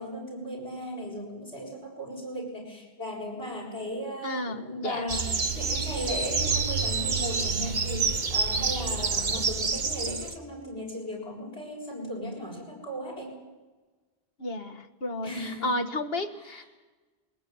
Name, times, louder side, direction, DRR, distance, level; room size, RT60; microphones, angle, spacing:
voice 1, 0.0-5.3 5.5-13.4 15.2-15.7 16.5-16.6, equal, 90° left, 0 dB, 7.3 m, -36 dB
voice 2, 4.2-5.1 14.4-16.6, left 1 dB, 70° left, 6 dB, 1.7 m, -32 dB
sound 1, 5.1-10.4, right 4 dB, 50° right, 1.1 m, -28 dB
21.5 x 19.0 x 9.5 m, 1.2 s
omnidirectional pair, 1.0 m